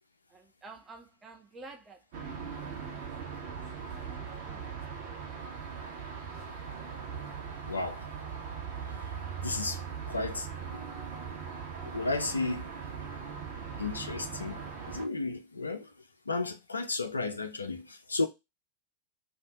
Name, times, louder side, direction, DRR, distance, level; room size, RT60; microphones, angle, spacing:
voice 1, 0.3-2.0 2.6-3.1 3.7-5.0, right 3 dB, 15° right, 0.3 m, -51 dB
sound 1, 2.1-15.0, right 6 dB, 50° right, 0.7 m, -40 dB
voice 2, 7.6-8.0 9.4-9.8 10.1-11.3 11.8-12.7 13.8-14.6 14.9-15.9 16.3-18.3, left 3 dB, 80° left, 0.4 m, -34 dB
2.5 x 2.0 x 2.8 m
figure-of-eight pair, 90°, 0 cm